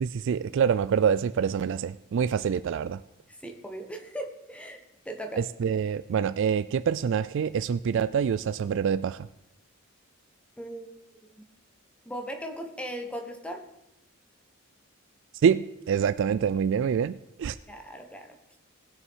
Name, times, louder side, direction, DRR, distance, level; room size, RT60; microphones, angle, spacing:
voice 1, 0.0-3.0 5.4-9.3 15.4-17.6, right 7 dB, 60° right, 15 dB, 0.3 m, -26 dB
voice 2, 3.4-4.8 5.0-5.4 10.6-10.9 11.2-11.5 12.1-13.6 17.7-18.3, equal, 5° left, 4 dB, 1.1 m, -38 dB
19.0 x 6.5 x 4.6 m, 0.85 s
head